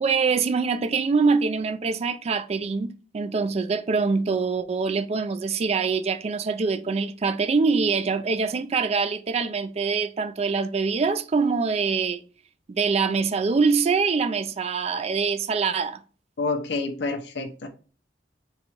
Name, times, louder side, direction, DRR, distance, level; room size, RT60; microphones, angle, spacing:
voice 1, 0.0-12.2 12.7-16.0, right 4 dB, 35° right, 0.3 m, -24 dB
voice 2, 16.4-17.7, left 3 dB, 70° left, 0.6 m, -28 dB
3.9 x 2.3 x 4.4 m
head